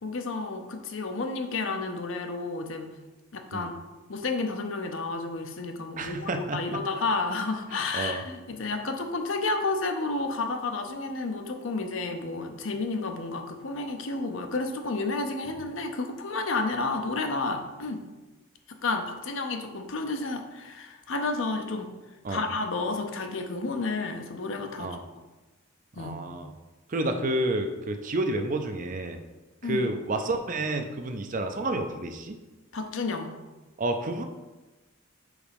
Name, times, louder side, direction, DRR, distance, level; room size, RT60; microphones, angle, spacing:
voice 1, 0.0-2.9 3.3-3.7 4.1-18.0 18.7-21.9 22.3-25.0 26.0-26.2 29.6-29.9 32.7-33.3, left 3 dB, 65° left, 5 dB, 0.7 m, -31 dB
voice 2, 6.0-6.8 7.7-8.2 22.2-22.4 24.8-25.0 26.0-26.5 26.9-29.2 29.6-32.4 33.8-34.2, right 2 dB, 40° right, 6 dB, 0.5 m, -30 dB
4.9 x 4.1 x 5.2 m, 1.2 s
head